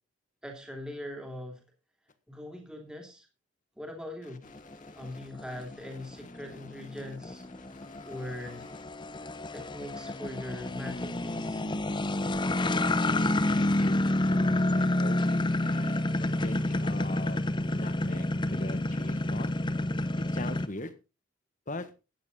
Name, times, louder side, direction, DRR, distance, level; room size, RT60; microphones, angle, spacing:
voice 1, 0.4-1.6 2.3-3.3 3.8-4.4 4.9-7.4 8.0-8.7 9.5-11.6, left 1 dB, 5° right, 2 dB, 2.8 m, -41 dB
voice 2, 4.2-5.7 6.0-7.0 7.5-8.8 13.5-16.0 16.4-19.5 20.3-20.9 21.7-21.9, left 2 dB, 35° left, 11 dB, 1.5 m, -42 dB
sound 1, 4.5-20.7, left 1 dB, 20° left, 0.7 m, -29 dB
14.0 x 9.7 x 4.0 m, 0.30 s
head